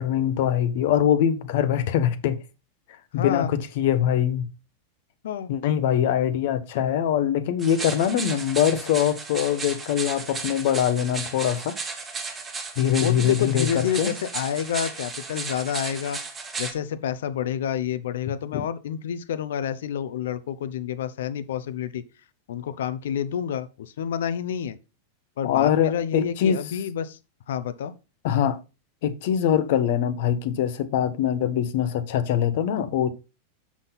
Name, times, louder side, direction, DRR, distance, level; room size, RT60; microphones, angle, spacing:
voice 1, 0.0-2.4 3.1-4.5 5.5-11.7 12.8-14.1 18.5-18.6 25.4-26.6 28.2-28.6 29.0-33.1, left 9 dB, 55° left, 1.0 m, -23 dB
voice 2, 3.2-3.5 5.2-5.5 13.0-16.2 16.6-22.0 22.5-24.8 25.4-27.2 27.5-27.9, left 9 dB, 85° left, 0.8 m, -29 dB
sound 1, 7.6-16.7, right 4 dB, 15° right, 1.2 m, -34 dB
7.3 x 6.1 x 4.0 m
supercardioid pair, 165°, 0 cm